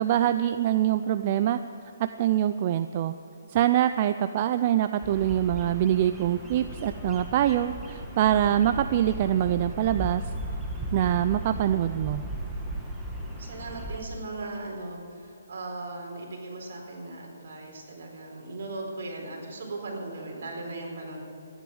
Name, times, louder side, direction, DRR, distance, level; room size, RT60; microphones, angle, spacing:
voice 1, 0.0-1.6 2.0-3.1 3.5-10.2 10.9-12.2, right 11 dB, 35° right, 10 dB, 0.4 m, -24 dB
Bird vocalization bird call bird song, 5.0-14.0, right 1 dB, 5° right, 1.5 m, -36 dB
voice 2, 13.1-21.2, right 2 dB, 60° right, 0 dB, 4.3 m, -38 dB
14.0 x 10.5 x 7.8 m, 2.7 s
hypercardioid pair, 165°, 0 cm